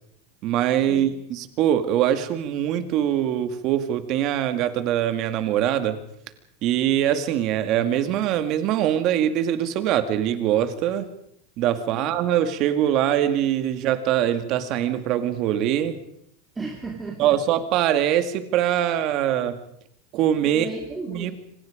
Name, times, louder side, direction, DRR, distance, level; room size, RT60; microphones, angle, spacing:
voice 1, 0.4-6.0 6.6-11.1 11.6-16.0 17.2-19.6 20.1-20.7 21.1-21.3, right 11 dB, 35° right, 9 dB, 2.2 m, -23 dB
voice 2, 16.5-17.4 20.4-21.3, right 3 dB, 10° right, 0 dB, 2.7 m, -34 dB
26.5 x 25.5 x 5.1 m, 0.71 s
supercardioid pair, 165°, 0 cm